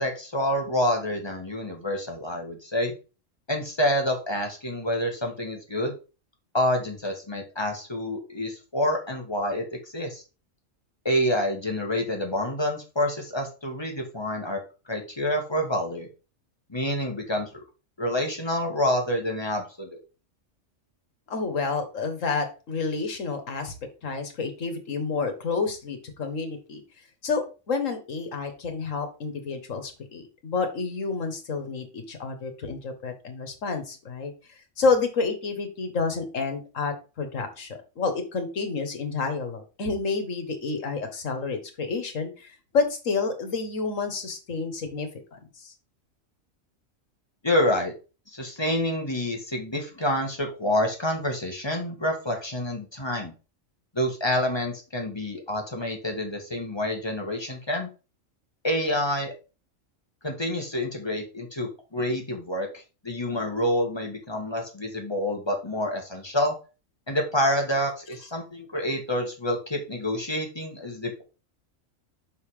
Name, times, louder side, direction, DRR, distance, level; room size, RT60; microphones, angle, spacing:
voice 1, 0.0-2.9 3.5-5.9 6.5-9.6 9.9-10.2 11.0-14.6 14.9-16.1 16.7-17.5 18.0-20.0 47.4-47.9 48.3-53.3 53.9-57.9 58.6-59.3 60.2-62.7 63.0-66.5 67.1-71.2, left 1 dB, 20° left, 2 dB, 1.7 m, -27 dB
voice 2, 21.3-23.7 24.0-26.8 27.2-27.4 27.7-34.3 34.8-45.7, left 4 dB, 70° left, 6 dB, 1.8 m, -29 dB
5.6 x 5.6 x 4.9 m, 0.32 s
omnidirectional pair, 1.4 m